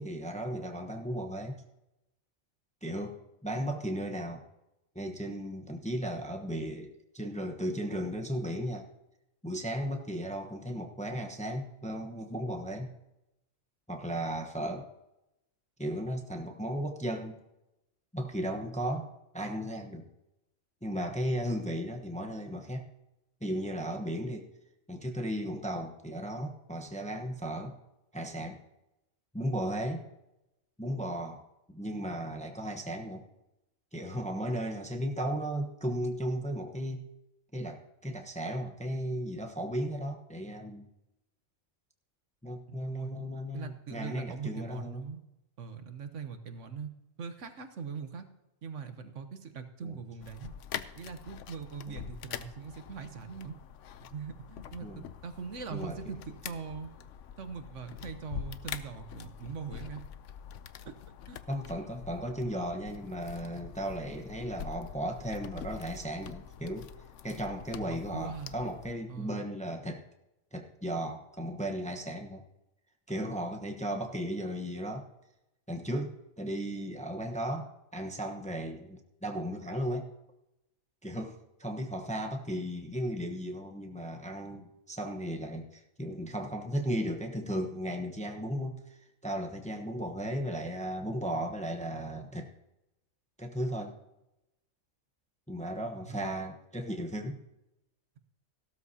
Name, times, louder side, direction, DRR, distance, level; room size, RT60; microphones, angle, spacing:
voice 1, 0.0-1.6 2.8-4.4 4.9-8.9 9.4-12.9 13.9-14.9 15.8-17.4 18.1-19.1 19.3-20.1 20.8-22.9 23.4-24.5 24.9-27.8 28.1-28.6 29.3-30.1 30.8-31.4 31.7-33.3 33.9-37.1 37.5-40.9 42.4-45.1 49.8-50.0 51.9-52.0 54.8-55.0 55.7-56.0 61.5-66.9 67.2-70.0 70.5-72.4 73.1-75.1 75.7-80.1 81.0-92.5 93.4-94.0 95.5-97.4, equal, 5° left, 3 dB, 0.9 m, -35 dB
voice 2, 42.7-43.1 43.5-45.2 45.6-46.9 47.2-48.2 48.6-50.5 51.0-53.6 54.0-56.9 57.4-60.0 60.8-60.9 61.3-61.4 67.7-68.5 69.1-69.4 95.9-96.2, right 6 dB, 65° right, 9 dB, 1.3 m, -41 dB
sound 1, 50.2-68.9, left 9 dB, 70° left, 0.9 m, -45 dB
16.0 x 13.0 x 2.8 m, 0.92 s
omnidirectional pair, 1.4 m